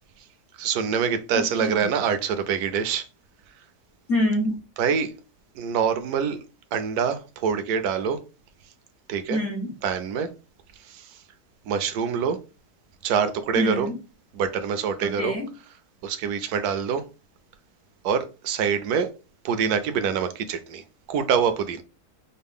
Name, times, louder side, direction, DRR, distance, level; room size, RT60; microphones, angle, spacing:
voice 1, 0.6-3.0 4.8-5.1 5.6-6.4 6.7-8.2 9.1-9.4 9.8-10.3 10.8-11.1 11.7-12.4 13.0-13.9 14.3-15.3 16.0-17.0 18.0-19.1 19.4-20.8 21.1-21.8, right 7 dB, 70° right, 1.0 m, -25 dB
voice 2, 1.3-1.7 4.1-4.6 9.3-9.7 13.6-14.0 15.0-15.5, left 1 dB, 50° left, 1.1 m, -26 dB
5.4 x 2.2 x 3.5 m
omnidirectional pair, 1.8 m